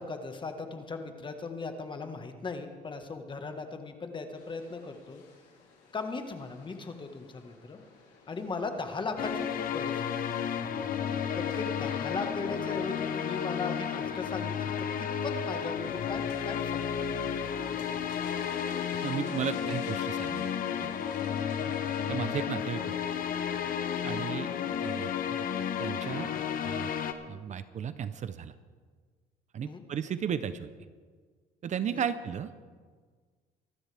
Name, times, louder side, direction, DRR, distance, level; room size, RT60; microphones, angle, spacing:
voice 1, 0.0-5.2 5.9-7.8 8.3-10.1 11.3-17.7 24.1-24.4 29.6-29.8 31.9-32.1, left 4 dB, 30° left, 6 dB, 1.5 m, -38 dB
sound 1, 4.3-22.4, left 4 dB, 90° left, 3.9 m, -55 dB
sound 2, 9.2-27.1, left 8 dB, 55° left, 1.0 m, -32 dB
voice 2, 19.0-20.5 20.8-20.9 22.1-22.8 24.0-24.5 24.8-25.5 25.8-26.3 26.6-26.9 27.3-28.5 29.5-30.7 31.6-32.5, right 8 dB, 45° right, 13 dB, 0.7 m, -34 dB
25.0 x 12.0 x 3.5 m, 1.5 s
cardioid pair, 110°, 17 cm